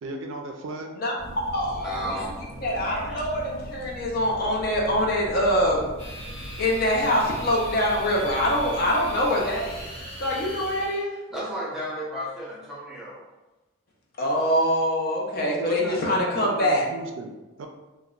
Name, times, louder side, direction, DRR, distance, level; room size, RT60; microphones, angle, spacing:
voice 1, 0.0-1.0 15.4-17.7, right 3 dB, 70° right, 4 dB, 0.3 m, -35 dB
voice 2, 1.0-2.2 2.6-5.9 6.6-9.9 10.2-11.1 14.2-16.8, equal, 45° left, -2 dB, 0.5 m, -24 dB
sound 1, 1.2-10.9, right 1 dB, 85° left, 0.8 m, -41 dB
voice 3, 1.8-2.5 2.9-3.2 11.3-13.2, equal, ahead, -7 dB, 0.6 m, -33 dB
sound 2, 6.0-11.0, left 1 dB, 65° left, 1.1 m, -40 dB
2.8 x 2.0 x 2.4 m, 1.1 s
head